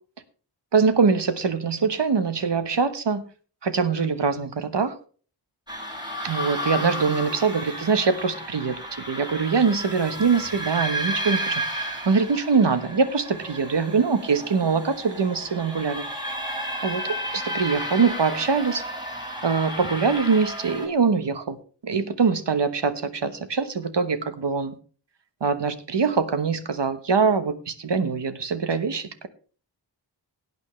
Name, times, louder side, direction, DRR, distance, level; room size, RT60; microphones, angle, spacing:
voice 1, 0.7-3.2 3.6-4.9 6.2-8.8 9.1-16.0 16.8-18.8 19.4-21.6 21.8-24.7 25.4-29.3, right 5 dB, 70° right, 11 dB, 1.2 m, -23 dB
sound 1, 5.7-20.9, equal, 10° right, 3.2 m, -32 dB
17.0 x 9.1 x 3.2 m, 0.39 s
wide cardioid pair, 70°, 43 cm